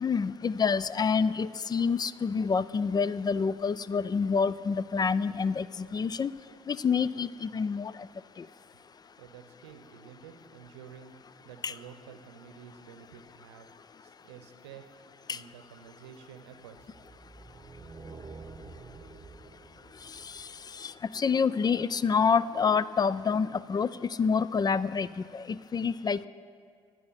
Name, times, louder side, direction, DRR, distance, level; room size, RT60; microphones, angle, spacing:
voice 1, 0.0-6.3 6.7-7.9 8.4-8.5 11.6-11.7 15.3-15.4 20.8-23.9 24.2-25.1 25.3-26.3, left 5 dB, 30° left, 18 dB, 0.4 m, -27 dB
voice 2, 9.2-13.7 14.0-14.9 15.3-16.9, right 8 dB, 85° right, 8 dB, 0.8 m, -50 dB
sound 1, 16.8-21.2, right 3 dB, 25° right, 1.0 m, -48 dB
15.0 x 9.6 x 4.1 m, 2.1 s
hypercardioid pair, 55°, 14 cm